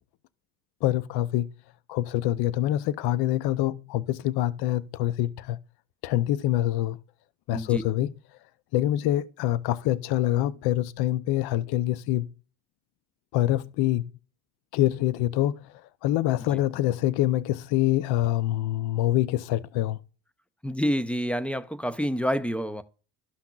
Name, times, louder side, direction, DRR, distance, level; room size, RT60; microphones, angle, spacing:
voice 1, 0.8-1.5 1.9-5.6 6.0-7.0 7.5-8.1 8.7-12.3 13.3-14.0 14.7-15.7 16.0-20.0, left 14 dB, 60° left, 0.6 m, -25 dB
voice 2, 20.6-22.8, equal, 5° left, 0.4 m, -28 dB
12.5 x 5.7 x 2.3 m
supercardioid pair, 80°, 43 cm